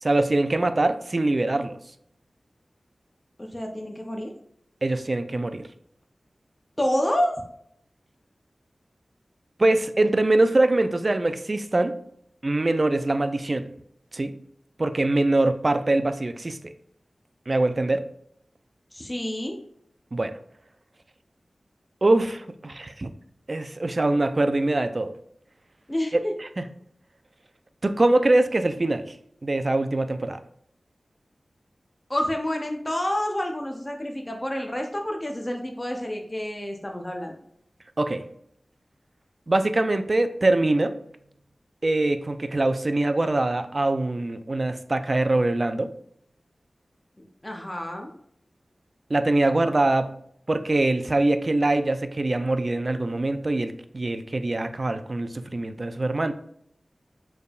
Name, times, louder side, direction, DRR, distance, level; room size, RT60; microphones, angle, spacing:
voice 1, 0.0-1.8 4.8-5.6 9.6-11.9 12.4-13.6 14.1-14.3 14.8-16.6 17.5-18.0 20.1-20.3 22.0-23.1 23.5-25.1 26.1-26.6 27.8-29.2 29.4-30.4 38.0-38.2 39.5-40.9 41.8-45.9 49.1-50.1 50.5-56.3, right 2 dB, 40° right, 9 dB, 0.4 m, -23 dB
voice 2, 3.4-4.3 6.8-7.3 18.9-19.6 25.9-26.3 32.1-37.3 47.4-48.1, left 1 dB, 20° left, 2 dB, 0.7 m, -28 dB
6.6 x 3.4 x 2.4 m, 0.70 s
wide cardioid pair, 80°, 0 cm